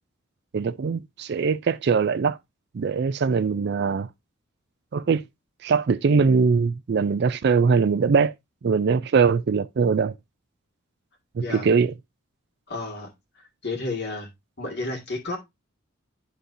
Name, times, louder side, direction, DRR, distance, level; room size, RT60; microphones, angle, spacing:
voice 1, 0.5-2.4 2.7-4.1 4.9-5.2 5.6-8.3 8.6-10.1 11.5-11.9, right 5 dB, 50° right, 0.4 m, -21 dB
voice 2, 12.7-14.3 14.6-15.4, left 2 dB, 50° left, 2.1 m, -32 dB
11.5 x 3.9 x 2.7 m
head